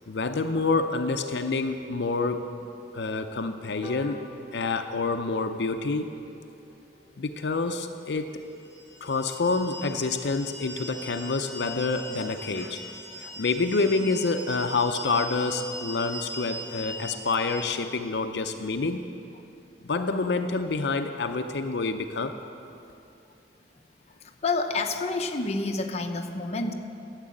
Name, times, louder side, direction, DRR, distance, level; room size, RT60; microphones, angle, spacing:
voice 1, 0.1-2.5 2.9-4.2 4.5-6.1 7.2-8.4 9.0-12.9 13.2-19.1 19.8-22.4, left 3 dB, 75° left, 7 dB, 0.6 m, -27 dB
sound 1, 3.8-10.6 11.0-11.1 11.4-11.5 11.8-11.9 12.2-12.3 12.6-12.8 13.3-13.4, equal, 35° right, 1.7 m, -50 dB
sound 2, 8.6-17.6, equal, 70° right, 2.8 m, -40 dB
voice 2, 24.1-26.7, left 3 dB, 40° left, 4 dB, 0.7 m, -29 dB
12.5 x 7.4 x 8.6 m, 2.7 s
head